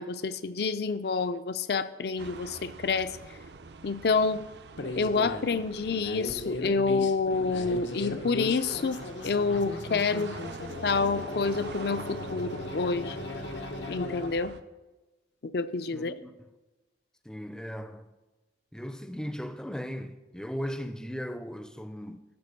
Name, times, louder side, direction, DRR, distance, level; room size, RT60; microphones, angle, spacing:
voice 1, 0.0-3.2 3.8-4.4 5.0-10.4 10.8-13.2 13.9-14.5 15.4-16.1, left 4 dB, 60° left, 0.5 m, -28 dB
sound 1, 2.2-14.6, right 3 dB, 70° right, 0.5 m, -45 dB
sound 2, 4.8-14.3, left 2 dB, 85° left, 0.9 m, -37 dB
voice 2, 15.9-16.3 17.2-18.1 18.7-22.2, equal, 5° left, 0.4 m, -37 dB
12.0 x 4.4 x 6.8 m
head